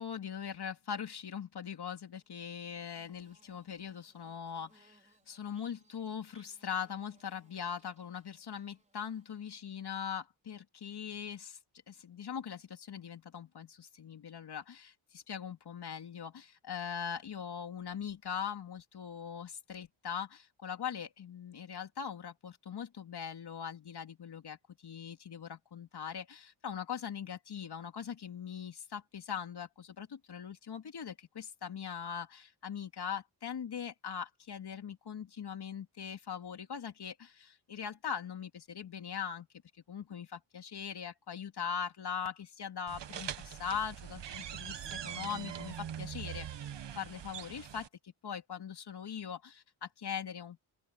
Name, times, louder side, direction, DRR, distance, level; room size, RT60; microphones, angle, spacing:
voice 1, 0.0-11.6 11.9-39.5 39.9-50.6, left 7 dB, 55° left, 2.9 m, -41 dB
Bird / Buzz, 2.1-9.8, right 2 dB, 15° right, 4.7 m, -69 dB
sound 1, 42.9-47.9, right 9 dB, 60° right, 1.5 m, -42 dB
open air
wide cardioid pair, 120°, 48 cm